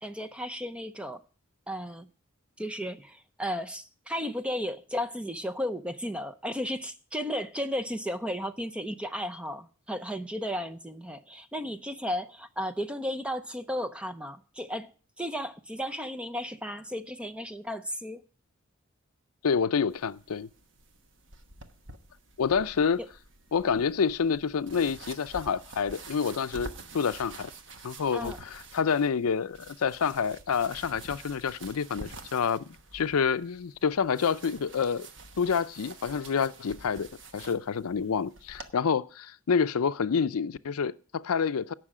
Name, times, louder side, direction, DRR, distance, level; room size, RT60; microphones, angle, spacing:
voice 1, 0.0-1.2 1.7-2.1 2.6-14.9 15.2-18.2 23.0-23.1 28.1-28.4, equal, 5° right, 0.6 m, -34 dB
voice 2, 19.4-20.5 22.4-23.0 23.5-27.5 27.8-35.1 35.4-37.1 37.3-41.7, left 6 dB, 85° left, 0.5 m, -28 dB
sound 1, 19.9-38.7, right 3 dB, 55° right, 1.2 m, -48 dB
17.0 x 6.3 x 4.9 m
head